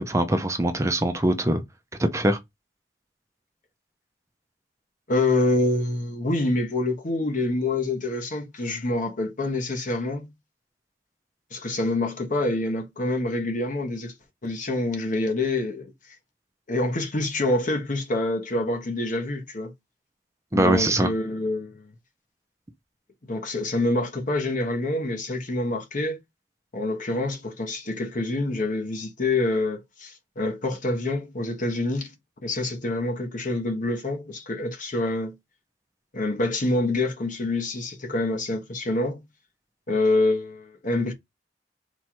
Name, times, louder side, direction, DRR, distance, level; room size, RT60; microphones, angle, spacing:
voice 1, 0.0-1.6 2.0-2.4 20.5-21.1, right 1 dB, 15° right, 0.6 m, -22 dB
voice 2, 5.1-10.3 11.5-14.1 14.4-15.9 16.7-19.7 20.5-21.8 23.2-26.2 26.7-32.1 32.4-35.3 36.1-39.2 39.9-41.1, left 2 dB, 45° left, 1.0 m, -26 dB
4.4 x 2.4 x 4.4 m
head